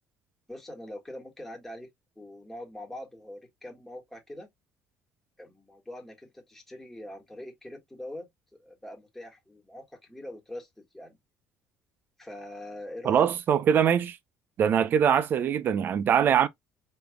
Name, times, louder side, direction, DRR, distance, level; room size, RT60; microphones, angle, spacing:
voice 1, 0.5-1.9 2.2-4.5 5.4-8.3 8.6-11.2 12.2-13.3, left 1 dB, 5° left, 1.6 m, -43 dB
voice 2, 13.1-14.2 14.6-16.5, right 8 dB, 45° right, 0.6 m, -23 dB
5.1 x 3.3 x 2.3 m
cardioid pair, 125°, 5 cm